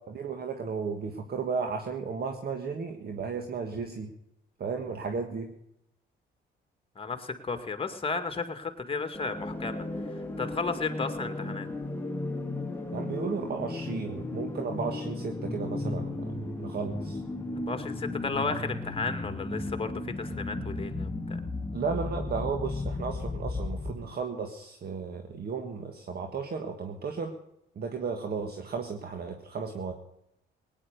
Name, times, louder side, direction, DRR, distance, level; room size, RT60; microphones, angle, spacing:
voice 1, 0.1-4.1 4.6-5.5 12.9-17.2 21.7-27.3 27.7-29.9, right 5 dB, 50° right, 4 dB, 1.7 m, -34 dB
voice 2, 7.0-9.8 10.4-11.7 17.7-21.4, left 4 dB, 25° left, 7 dB, 2.1 m, -33 dB
sound 1, 9.1-24.1, left 2 dB, 10° left, 1.9 m, -35 dB
18.0 x 9.9 x 6.7 m, 0.80 s
cardioid pair, 90°, 20 cm